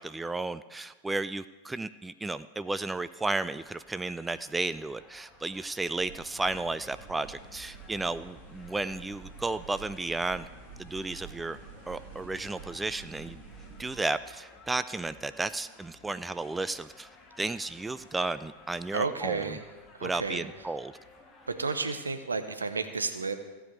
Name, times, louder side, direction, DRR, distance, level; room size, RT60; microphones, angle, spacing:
voice 1, 0.0-10.5 10.8-11.6 11.9-13.4 13.8-17.1 17.4-19.6 20.0-20.9, right 3 dB, 10° right, 14 dB, 0.3 m, -33 dB
sound 1, 2.7-21.9, left 3 dB, 15° left, 1.7 m, -56 dB
sound 2, 6.0-14.0, right 5 dB, 45° right, 3.2 m, -49 dB
voice 2, 18.9-19.6 20.0-20.4 21.5-23.3, right 4 dB, 75° right, 8 dB, 0.9 m, -32 dB
15.0 x 5.0 x 8.0 m, 1.3 s
figure-of-eight pair, 90°, 0 cm